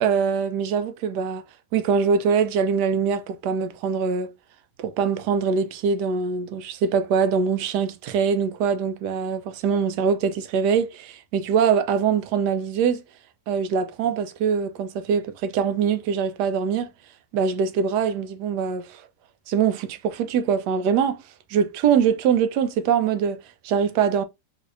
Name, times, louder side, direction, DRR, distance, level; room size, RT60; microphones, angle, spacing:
voice 1, 0.0-1.4 1.7-4.3 4.8-13.0 13.5-16.9 17.3-19.0 19.5-21.2 21.5-24.2, right 6 dB, 85° right, 1.2 m, -23 dB
3.9 x 2.7 x 2.5 m
omnidirectional pair, 1.8 m